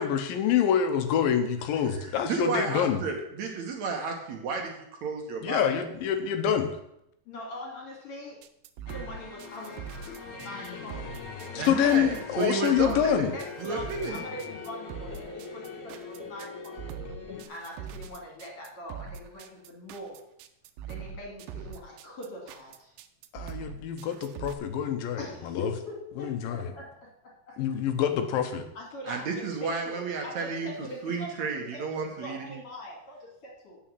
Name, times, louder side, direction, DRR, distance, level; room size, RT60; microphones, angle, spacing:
voice 1, 0.0-3.0 5.4-6.8 11.6-13.3 23.3-25.7 26.2-26.7 27.6-28.6, left 8 dB, 90° left, 7 dB, 2.7 m, -26 dB
voice 2, 2.0-4.7 5.0-5.7 11.6-13.3 13.6-14.2 29.1-30.7 31.0-32.6, right 4 dB, 65° right, 2 dB, 2.3 m, -32 dB
voice 3, 7.3-8.4 8.9-11.9 13.3-17.0 17.5-20.2 20.9-22.9 25.2-27.1 27.5-27.6 28.8-33.8, left 1 dB, 45° left, -1 dB, 3.6 m, -42 dB
sound 1, 8.4-24.5, right 8 dB, 85° right, 2.4 m, -42 dB
sound 2, 8.9-17.5, left 4 dB, 60° left, 2.8 m, -41 dB
8.7 x 6.2 x 7.5 m, 0.78 s
omnidirectional pair, 3.9 m